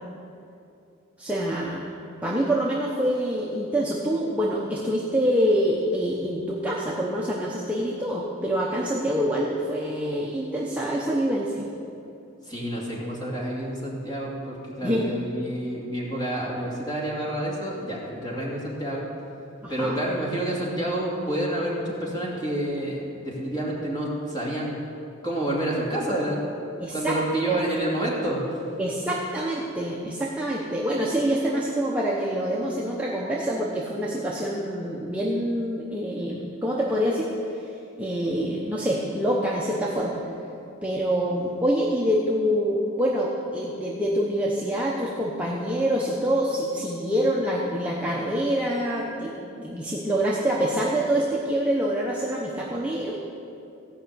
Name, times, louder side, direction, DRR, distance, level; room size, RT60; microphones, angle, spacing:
voice 1, 1.2-1.9 2.2-11.7 14.8-15.1 19.6-19.9 26.8-27.2 27.5-27.6 28.8-37.3 38.0-40.2 40.8-53.2, equal, 5° right, -5 dB, 0.9 m, -26 dB
voice 2, 12.4-19.1 19.7-24.8 25.2-26.4 26.9-28.7, right 1 dB, 20° left, -4 dB, 2.5 m, -29 dB
16.0 x 5.7 x 8.0 m, 2.7 s
head